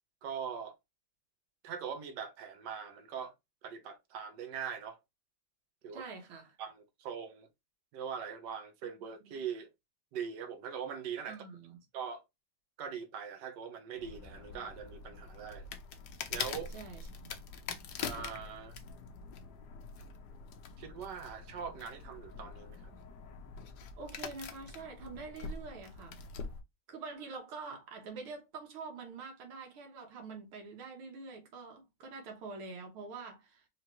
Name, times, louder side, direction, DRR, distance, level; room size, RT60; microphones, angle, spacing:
voice 1, 0.2-0.8 1.6-3.3 3.6-5.0 5.8-6.0 6.6-7.5 7.9-9.7 10.1-11.4 11.9-12.2 12.8-15.7 16.3-16.7 18.0-18.8 20.8-22.8, right 7 dB, 60° right, 1.5 m, -41 dB
voice 2, 5.9-6.6 9.3-9.4 11.3-11.8 16.7-17.3 24.0-26.2 26.9-33.7, right 4 dB, 85° right, 2.2 m, -46 dB
sound 1, 14.0-26.6, left 5 dB, 65° left, 1.1 m, -44 dB
5.0 x 3.0 x 3.0 m
omnidirectional pair, 2.3 m